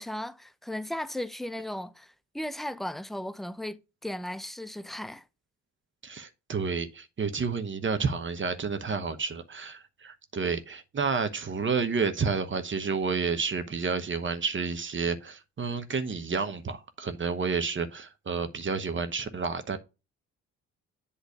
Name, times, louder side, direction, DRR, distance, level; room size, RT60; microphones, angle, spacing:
voice 1, 0.0-5.2, left 1 dB, ahead, 0.5 m, -36 dB
voice 2, 6.0-19.8, right 5 dB, 35° right, 1.1 m, -30 dB
8.1 x 3.2 x 6.4 m
hypercardioid pair, 55°, 33 cm